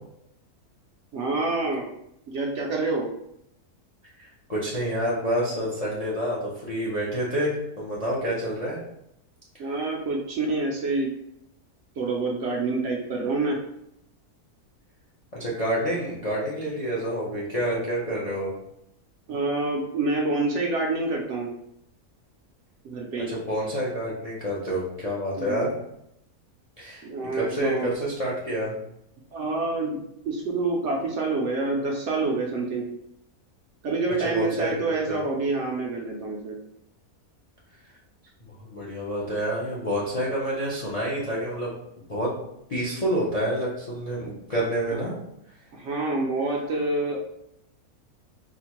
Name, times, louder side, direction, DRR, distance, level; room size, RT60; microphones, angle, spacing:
voice 1, 1.1-1.9 2.3-3.1 9.6-11.1 12.0-13.6 19.3-21.5 22.8-23.3 25.4-25.7 27.0-27.9 29.3-32.9 33.8-36.6 44.9-45.0 45.7-47.2, right 3 dB, 65° right, -1 dB, 0.8 m, -27 dB
voice 2, 4.2-8.8 9.6-9.7 15.3-18.5 23.3-25.7 26.8-28.8 34.2-34.8 35.1-35.2 38.7-41.7 42.1-42.3 42.7-45.1, equal, 45° left, -5 dB, 0.5 m, -28 dB
4.2 x 2.1 x 2.9 m, 0.78 s
omnidirectional pair, 1.6 m